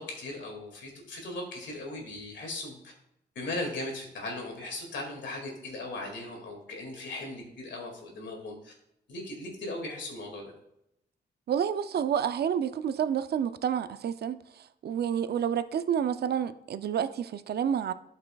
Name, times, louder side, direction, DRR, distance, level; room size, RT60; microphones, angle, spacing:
voice 1, 0.0-2.9 3.4-8.7 9.1-10.5, left 2 dB, 85° left, 2.2 m, -38 dB
voice 2, 11.5-17.9, right 8 dB, 60° right, 0.5 m, -29 dB
11.5 x 5.5 x 2.3 m
cardioid pair, 80°, 18 cm